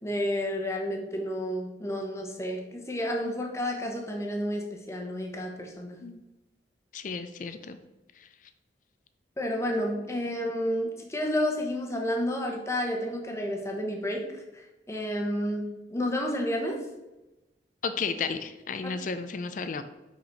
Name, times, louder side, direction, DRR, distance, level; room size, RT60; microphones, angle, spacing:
voice 1, 0.0-6.0 9.4-16.8, equal, 15° left, 1 dB, 1.0 m, -31 dB
voice 2, 6.9-7.8 17.8-19.8, left 5 dB, 45° left, 9 dB, 0.4 m, -33 dB
6.0 x 5.6 x 4.0 m, 1.0 s
head